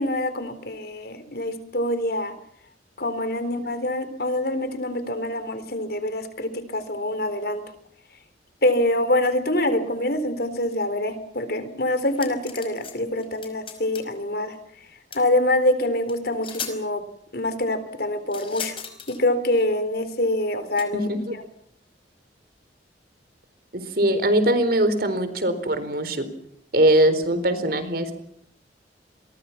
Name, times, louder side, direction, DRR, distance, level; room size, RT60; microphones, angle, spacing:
voice 1, 0.0-2.3 3.0-7.6 8.6-14.6 15.1-17.0 17.3-18.8 19.1-21.1, left 1 dB, 60° left, 11 dB, 3.9 m, -25 dB
sound 1, 12.1-12.9 13.2-14.1 15.1-15.2 16.1-16.2 16.4-16.8 18.3-19.2 20.8-20.9, left 7 dB, 30° left, 5.1 m, -36 dB
voice 2, 20.9-21.3 23.7-26.3 26.7-28.1, right 1 dB, 55° right, 11 dB, 4.2 m, -21 dB
28.0 x 23.0 x 5.9 m, 0.67 s
head